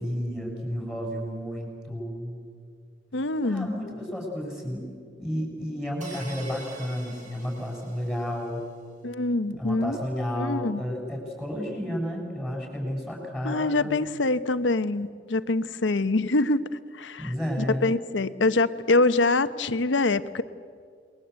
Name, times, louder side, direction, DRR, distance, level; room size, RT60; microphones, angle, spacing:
voice 1, 0.0-2.4 3.4-4.9 5.2-8.6 9.6-14.0 17.2-17.9, equal, 5° right, 0 dB, 7.1 m, -32 dB
voice 2, 3.1-3.7 9.0-10.0 10.3-10.8 13.4-16.7 16.9-20.4, left 2 dB, 85° left, 13 dB, 1.0 m, -25 dB
sound 1, 6.0-8.5, right 2 dB, 45° right, 4.5 m, -46 dB
29.0 x 21.5 x 8.2 m, 2.1 s
head